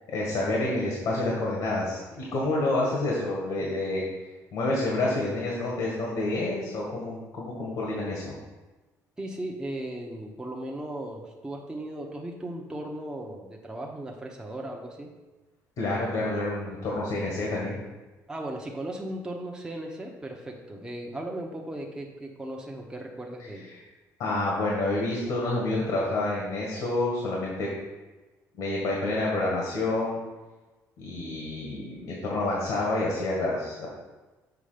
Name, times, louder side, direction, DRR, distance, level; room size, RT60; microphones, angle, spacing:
voice 1, 0.1-4.0 4.5-8.3 15.8-17.8 24.2-27.7 28.6-30.2 31.0-33.9, left 2 dB, 70° left, -3 dB, 1.8 m, -28 dB
voice 2, 9.2-15.1 18.3-23.7, right 1 dB, 10° right, 0 dB, 1.0 m, -37 dB
7.0 x 5.0 x 5.0 m, 1.2 s
cardioid pair, 115°, 7 cm